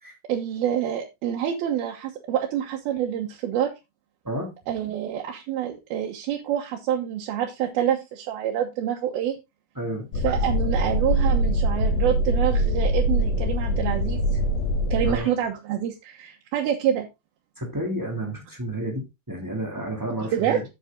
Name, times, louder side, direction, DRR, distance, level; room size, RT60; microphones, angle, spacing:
voice 1, 0.3-3.7 4.7-9.4 10.2-14.2 14.9-17.1 20.3-20.6, right 10 dB, 75° right, 1 dB, 2.9 m, -27 dB
voice 2, 9.7-10.2 15.0-15.3 17.6-20.6, right 1 dB, 10° right, 1 dB, 1.2 m, -31 dB
sound 1, 10.1-15.2, equal, 65° left, 3.9 m, -23 dB
8.1 x 8.0 x 3.7 m, 0.24 s
omnidirectional pair, 4.5 m